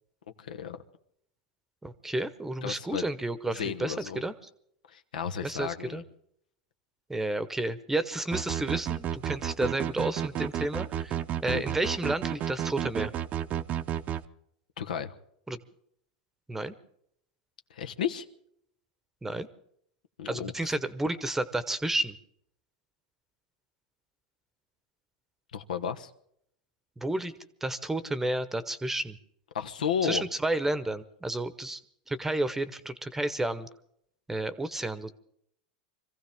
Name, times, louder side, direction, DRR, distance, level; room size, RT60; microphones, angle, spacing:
voice 1, 0.4-0.8 2.6-3.0 3.5-4.2 4.9-6.0 11.5-11.6 14.8-15.1 17.7-18.2 20.2-20.8 25.5-26.1 29.5-30.2, left 8 dB, 90° left, 7 dB, 1.1 m, -33 dB
voice 2, 1.8-4.3 5.4-6.0 7.1-13.1 15.5-15.6 16.5-16.7 19.2-19.5 20.3-22.2 27.0-27.3 27.6-29.2 30.0-31.8 32.1-33.7 34.3-35.1, right 2 dB, 10° right, 14 dB, 0.9 m, -31 dB
sound 1, 8.3-14.2, right 10 dB, 35° right, 0.7 m, -31 dB
25.5 x 15.5 x 3.6 m, 0.69 s
hypercardioid pair, 120°, 4 cm